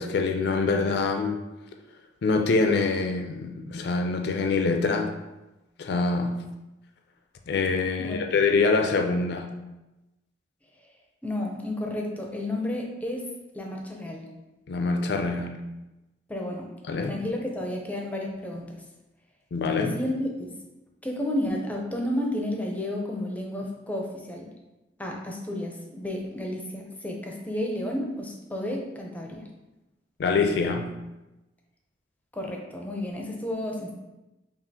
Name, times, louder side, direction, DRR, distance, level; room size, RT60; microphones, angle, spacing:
voice 1, 0.0-1.4 2.2-5.1 5.8-6.3 7.5-9.5 14.7-15.5 16.9-17.1 19.5-19.9 30.2-30.9, left 4 dB, 65° left, 4 dB, 0.4 m, -25 dB
voice 2, 11.2-14.2 16.3-16.7 17.0-18.7 19.8-20.5 21.0-24.5 25.0-29.5 32.3-33.9, left 1 dB, 10° left, 0 dB, 0.5 m, -32 dB
5.5 x 2.4 x 2.7 m, 1.0 s
head